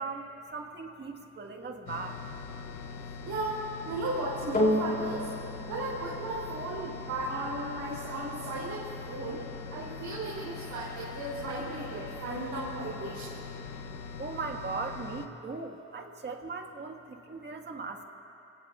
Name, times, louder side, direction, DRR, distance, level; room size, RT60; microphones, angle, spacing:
voice 1, 0.0-2.2 13.4-13.5 14.2-18.0, right 4 dB, 35° right, 2 dB, 1.8 m, -38 dB
sound 1, 1.9-15.3, left 5 dB, 85° left, 0.9 m, -42 dB
voice 2, 3.2-5.3 5.7-9.4 9.7-13.4, right 2 dB, 65° right, -7 dB, 3.3 m, -35 dB
sound 2, 4.5-13.1 13.8-13.9, left 1 dB, 30° left, 4.2 m, -35 dB
26.5 x 18.0 x 2.5 m, 2.8 s
cardioid pair, 90°, 30 cm